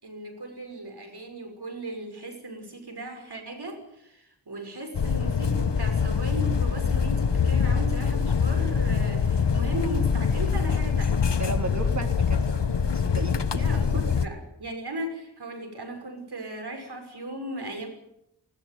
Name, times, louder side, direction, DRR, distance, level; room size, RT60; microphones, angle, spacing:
voice 1, 0.0-11.2 13.5-17.9, right 1 dB, 70° right, 5 dB, 6.4 m, -37 dB
sound 1, 4.9-14.3, left 6 dB, 85° left, 1.4 m, -24 dB
voice 2, 11.3-13.7 13.9-14.0, right 2 dB, 40° right, 5 dB, 3.6 m, -35 dB
21.0 x 18.0 x 9.5 m, 0.80 s
wide cardioid pair, 60°, 41 cm